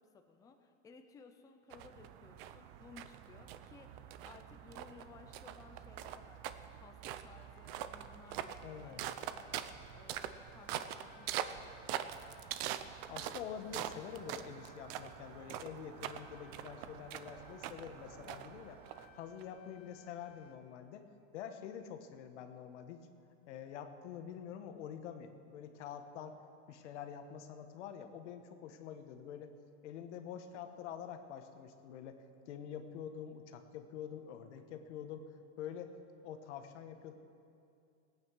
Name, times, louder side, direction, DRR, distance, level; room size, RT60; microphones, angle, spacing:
voice 1, 0.0-12.3, left 5 dB, 10° left, 5 dB, 0.6 m, -59 dB
sound 1, 1.7-19.4, right 11 dB, 55° right, 0.7 m, -44 dB
sound 2, 7.5-20.6, left 7 dB, 30° left, 1.3 m, -66 dB
voice 2, 8.6-9.1 13.1-18.8 19.1-21.0 21.3-23.1 23.5-26.4 26.7-29.5 29.8-32.2 32.5-35.3 35.6-36.0 36.2-37.1, left 8 dB, 85° left, 7 dB, 1.3 m, -46 dB
18.0 x 9.0 x 6.2 m, 2.5 s
supercardioid pair, 155°, 35 cm